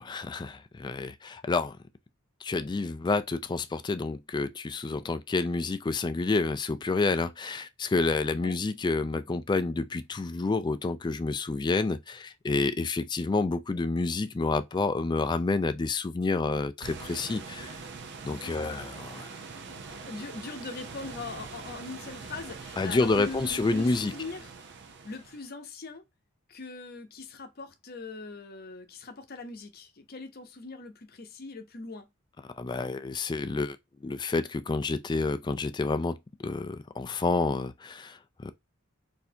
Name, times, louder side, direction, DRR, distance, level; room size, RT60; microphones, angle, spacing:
voice 1, 0.0-1.8 2.4-17.8 18.2-19.4 22.8-24.1 32.6-33.8 34.0-38.5, left 3 dB, 20° left, 0.3 m, -29 dB
sound 1, 16.8-25.5, right 4 dB, 55° right, 0.6 m, -43 dB
voice 2, 18.3-18.8 19.6-24.5 25.0-26.0 26.5-32.1, left 3 dB, 50° left, 0.8 m, -41 dB
4.1 x 2.7 x 2.7 m
head